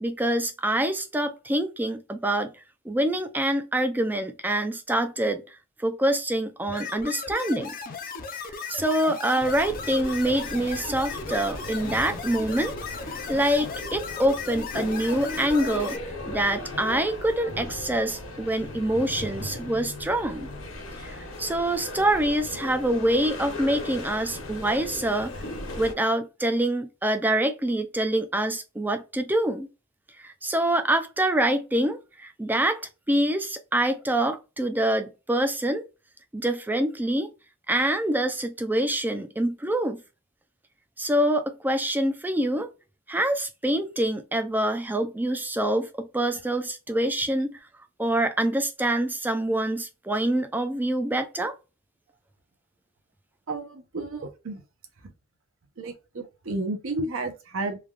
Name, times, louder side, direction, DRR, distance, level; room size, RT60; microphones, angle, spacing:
voice 1, 0.0-2.5 2.9-5.4 5.8-7.7 8.7-12.7 13.3-16.0 16.3-20.5 21.0-25.3 25.8-29.7 30.2-32.8 33.1-35.8 36.3-37.3 37.7-40.0 41.0-42.7 43.1-47.5 48.0-51.5, right 1 dB, 10° right, 0.4 m, -25 dB
sound 1, 6.7-16.0, left 4 dB, 40° left, 0.6 m, -36 dB
sound 2, 9.4-25.9, left 2 dB, 70° left, 1.2 m, -37 dB
voice 2, 53.5-54.6 55.8-57.8, right 2 dB, 70° right, 0.7 m, -32 dB
3.3 x 2.3 x 2.3 m
head